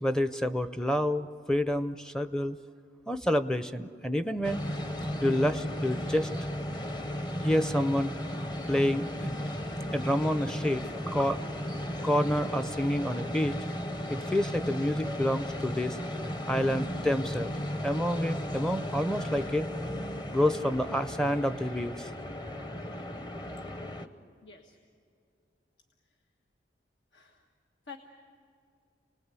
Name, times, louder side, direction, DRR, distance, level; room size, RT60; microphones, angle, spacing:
voice 1, 0.0-2.6 3.1-4.7 5.2-6.3 7.4-8.1 8.7-9.4 9.9-11.4 12.0-13.6 14.1-16.0 16.5-17.5 17.8-19.7 20.3-22.1, equal, 5° left, 10 dB, 0.5 m, -28 dB
sound 1, 4.4-24.1, equal, 25° left, 0.9 m, -35 dB
voice 2, 24.4-24.8 27.1-27.5 27.9-28.0, left 5 dB, 85° left, 3 dB, 1.4 m, -48 dB
28.0 x 20.0 x 8.3 m, 2.4 s
head